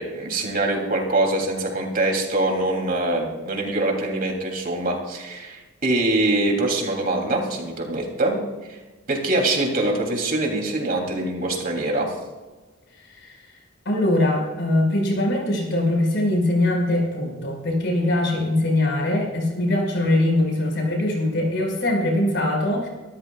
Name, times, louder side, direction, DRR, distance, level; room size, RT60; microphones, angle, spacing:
voice 1, 0.0-8.4 8.7-8.8 9.1-12.1, right 2 dB, 45° right, 1 dB, 3.1 m, -24 dB
voice 2, 13.0-13.5 13.9-22.9, left 1 dB, 60° left, 0 dB, 5.5 m, -22 dB
25.5 x 13.5 x 2.4 m, 1.2 s
head